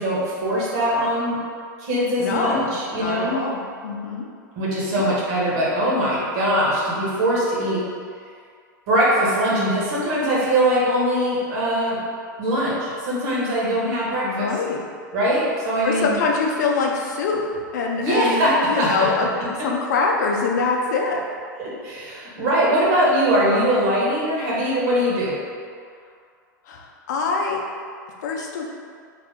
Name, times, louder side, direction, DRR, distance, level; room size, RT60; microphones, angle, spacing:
voice 1, 0.0-1.4 1.8-3.4 4.5-7.8 8.9-12.0 12.4-14.5 15.1-16.2 18.0-19.1 21.6-25.3, equal, 50° right, -6 dB, 1.4 m, -21 dB
voice 2, 2.2-4.3 4.9-5.1 14.2-14.8 15.8-17.4 17.7-18.4 18.7-21.2 26.7-27.6 28.2-28.7, left 4 dB, 60° left, 0 dB, 0.6 m, -24 dB
4.1 x 2.8 x 3.5 m, 2.2 s
figure-of-eight pair, 95°, 11 cm